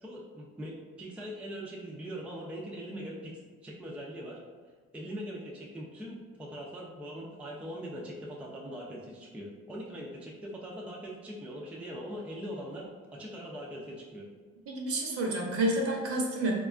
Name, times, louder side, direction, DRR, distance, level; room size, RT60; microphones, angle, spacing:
voice 1, 0.0-3.3 3.6-4.4 4.9-14.3, equal, 5° right, -3 dB, 0.4 m, -41 dB
voice 2, 14.7-16.6, right 1 dB, 55° right, -1 dB, 0.7 m, -29 dB
3.4 x 2.3 x 2.4 m, 1.5 s
cardioid pair, 95°, 29 cm